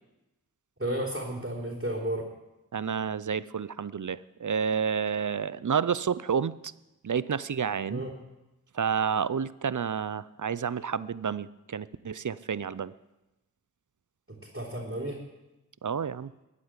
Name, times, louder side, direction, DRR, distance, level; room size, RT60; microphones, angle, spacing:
voice 1, 0.8-2.3 7.9-8.1 14.3-15.2, right 1 dB, 35° right, -5 dB, 3.5 m, -33 dB
voice 2, 2.7-6.5 7.0-8.0 8.7-12.9 15.8-16.3, right 7 dB, 60° right, 18 dB, 0.5 m, -30 dB
14.0 x 8.5 x 9.7 m, 1.0 s
wide cardioid pair, 45°, 34 cm